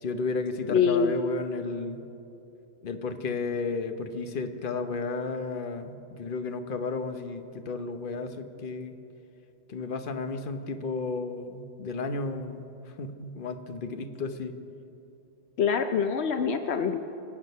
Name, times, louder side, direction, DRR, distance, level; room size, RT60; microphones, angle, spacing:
voice 1, 0.0-2.0 2.8-9.0 9.7-14.6, left 3 dB, 55° left, 7 dB, 1.1 m, -33 dB
voice 2, 0.7-1.2 15.6-17.0, left 6 dB, 75° left, 7 dB, 1.0 m, -25 dB
26.0 x 8.7 x 5.5 m, 2.8 s
omnidirectional pair, 1.1 m